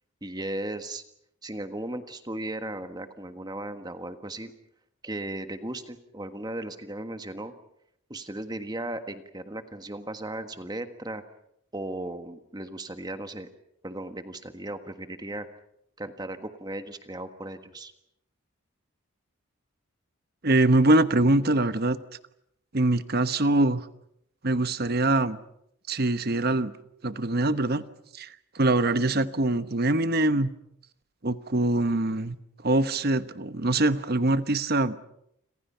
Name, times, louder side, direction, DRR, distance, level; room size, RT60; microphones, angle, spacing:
voice 1, 0.2-1.0 1.4-4.5 5.0-7.5 8.1-11.2 11.7-13.5 13.8-15.5 16.0-17.9, right 1 dB, 20° right, 8 dB, 1.5 m, -36 dB
voice 2, 20.4-22.0 22.7-23.9 24.4-25.4 25.9-26.7 27.0-27.8 28.1-30.5 31.2-32.4 32.6-35.0, right 2 dB, 45° right, 12 dB, 1.1 m, -23 dB
29.0 x 27.0 x 5.7 m, 0.76 s
head